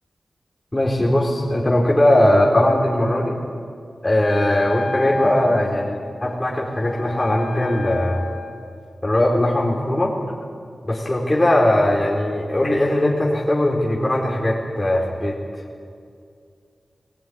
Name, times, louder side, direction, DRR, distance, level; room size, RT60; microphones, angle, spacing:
voice 1, 0.7-3.4 4.0-8.2 9.0-10.1 10.8-15.4, left 1 dB, 30° left, -3 dB, 4.3 m, -19 dB
Wind instrument woodwind instrument, 4.2-8.7, left 2 dB, 85° left, 5.2 m, -31 dB
21.0 x 17.5 x 9.7 m, 2.4 s
cardioid pair, 50°, 0 cm